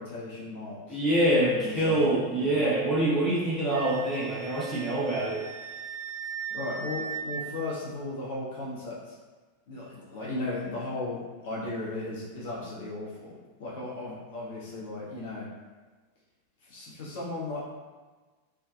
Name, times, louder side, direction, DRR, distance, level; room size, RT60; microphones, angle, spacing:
voice 1, 0.0-1.0 1.4-2.6 6.5-9.2 9.7-15.5 16.7-17.6, left 2 dB, 55° left, -6 dB, 0.7 m, -36 dB
voice 2, 0.9-5.4, right 1 dB, ahead, -10 dB, 0.9 m, -25 dB
Wind instrument woodwind instrument, 3.7-7.3, right 6 dB, 25° right, 1.0 m, -38 dB
2.6 x 2.3 x 2.3 m, 1.3 s
figure-of-eight pair, 90°, 0 cm